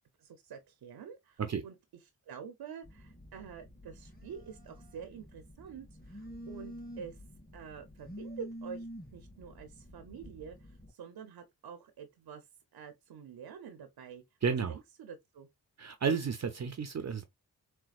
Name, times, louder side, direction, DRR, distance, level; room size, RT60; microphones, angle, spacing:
voice 1, 0.2-1.7 2.3-7.2 7.5-8.9 9.1-12.5 12.7-14.2 14.7-15.5, right 7 dB, 75° right, 0.7 m, -47 dB
Telephone, 2.8-10.9, equal, 25° left, 2.4 m, -48 dB
voice 2, 14.4-14.8 15.8-17.2, right 6 dB, 45° right, 0.6 m, -32 dB
4.2 x 2.2 x 2.4 m
cardioid pair, 45°, 39 cm